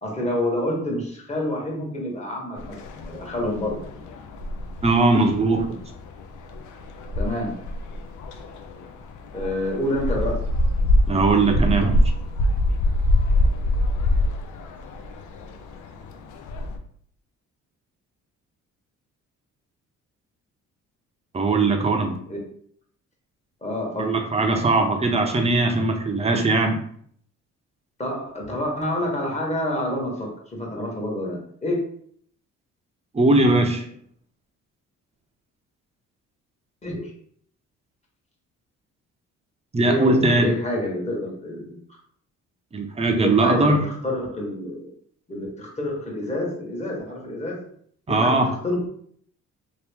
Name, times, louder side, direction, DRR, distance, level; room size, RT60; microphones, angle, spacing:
voice 1, 0.0-3.8 7.1-7.6 9.3-10.4 22.3-22.4 23.6-24.2 28.0-31.8 36.8-37.0 39.8-41.8 43.2-44.9 45.3-47.6 48.1-48.9, left 1 dB, 20° left, -2 dB, 1.3 m, -28 dB
sound 1, 2.6-16.8, left 1 dB, 80° left, 0.6 m, -25 dB
voice 2, 4.8-5.8 11.1-12.0 21.3-22.2 24.0-26.8 33.1-33.8 39.7-40.8 42.7-43.8 48.1-48.5, right 2 dB, 20° right, 4 dB, 0.6 m, -20 dB
3.0 x 2.5 x 3.4 m, 0.62 s
cardioid pair, 90°, 30 cm